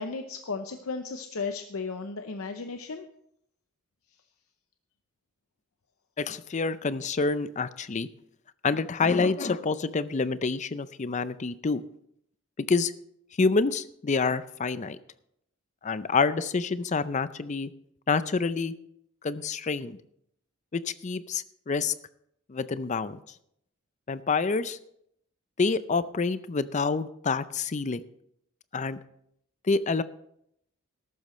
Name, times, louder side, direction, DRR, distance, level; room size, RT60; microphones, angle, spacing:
voice 1, 0.0-3.1, left 4 dB, 85° left, 7 dB, 0.7 m, -35 dB
voice 2, 6.2-8.1 8.6-11.8 12.7-12.9 13.4-15.0 15.8-17.7 18.1-18.7 19.2-20.0 20.7-21.9 22.5-23.2 24.1-24.8 25.6-28.0 28.7-29.0 29.6-30.0, left 4 dB, 35° left, 14 dB, 0.5 m, -27 dB
14.0 x 12.0 x 3.2 m, 0.74 s
head